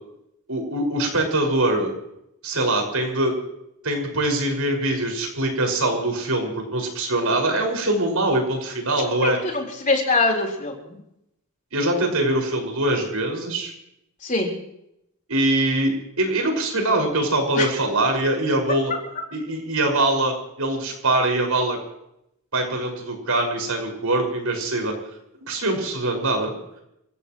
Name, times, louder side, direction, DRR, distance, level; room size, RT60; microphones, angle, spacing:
voice 1, 0.5-1.9 2.4-3.3 3.8-9.4 11.7-13.7 15.3-18.9 19.3-21.8 22.5-24.9 25.5-26.6, right 1 dB, 90° right, 2 dB, 5.7 m, -23 dB
voice 2, 9.1-11.0 14.2-14.5 17.6-17.7, left 3 dB, 35° left, 0 dB, 4.0 m, -23 dB
29.5 x 15.5 x 3.1 m, 0.80 s
head